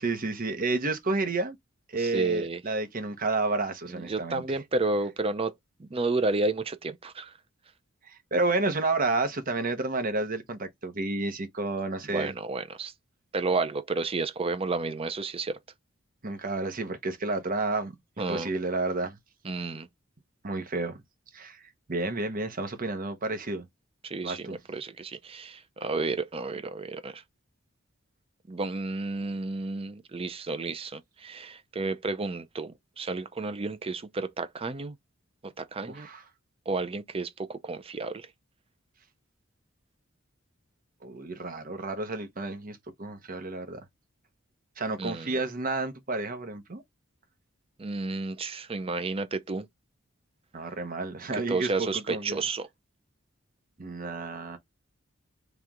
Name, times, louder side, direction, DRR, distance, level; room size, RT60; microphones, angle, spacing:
voice 1, 0.0-1.6 1.9-4.4 8.1-12.3 16.2-19.2 20.4-21.0 21.3-23.7 24.2-24.6 35.9-36.2 41.0-43.8 44.8-46.8 50.5-52.4 53.8-54.6, right 3 dB, 45° right, 1.0 m, -31 dB
voice 2, 2.0-2.6 3.9-5.5 5.8-7.3 12.1-12.9 13.3-15.6 18.2-18.5 19.4-19.9 24.0-27.2 28.5-35.0 35.4-36.1 36.7-38.3 45.0-45.3 47.8-49.7 51.3-52.7, right 3 dB, 30° right, 0.5 m, -31 dB
3.3 x 3.0 x 3.6 m
head